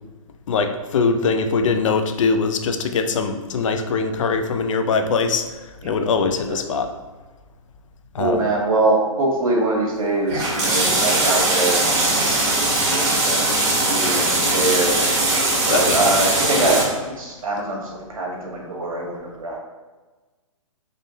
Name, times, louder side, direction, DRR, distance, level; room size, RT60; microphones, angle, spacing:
voice 1, 0.5-5.5 5.8-6.9 8.1-8.5 15.7-16.2, left 4 dB, 65° left, 7 dB, 0.5 m, -22 dB
voice 2, 8.2-13.4 13.9-15.0 15.7-19.6, right 2 dB, 75° right, -2 dB, 1.3 m, -23 dB
sound 1, 10.3-16.8, right 2 dB, 50° right, 1.5 m, -20 dB
3.6 x 3.2 x 2.7 m, 1.2 s
hypercardioid pair, 145°, 18 cm